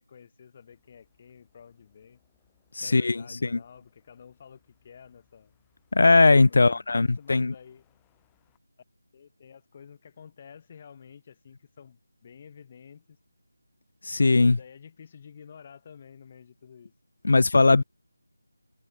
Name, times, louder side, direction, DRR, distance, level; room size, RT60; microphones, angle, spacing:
voice 1, 0.0-2.2 2.8-5.5 6.5-7.9 9.1-13.2 14.4-16.9, left 7 dB, 30° left, 4.7 m, -50 dB
sound 1, 0.7-8.6, left 33 dB, 10° left, 6.1 m, -71 dB
voice 2, 2.8-3.6 5.9-7.5 14.0-14.6 17.2-17.8, left 3 dB, 55° left, 0.3 m, -19 dB
figure-of-eight pair, 170°, 0 cm